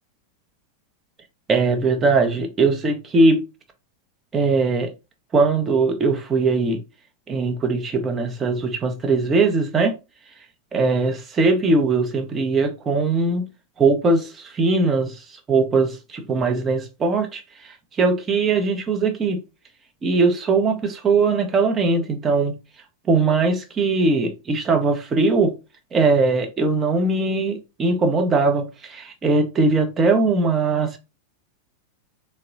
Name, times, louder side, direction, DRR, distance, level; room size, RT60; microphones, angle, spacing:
voice 1, 1.5-3.4 4.3-4.9 5.3-6.8 7.3-9.9 10.7-13.4 13.8-15.2 15.5-17.4 18.0-19.4 20.0-22.5 23.1-25.5 25.9-31.0, right 3 dB, 20° right, 0.8 m, -20 dB
3.8 x 2.1 x 3.8 m
figure-of-eight pair, 90°, 0 cm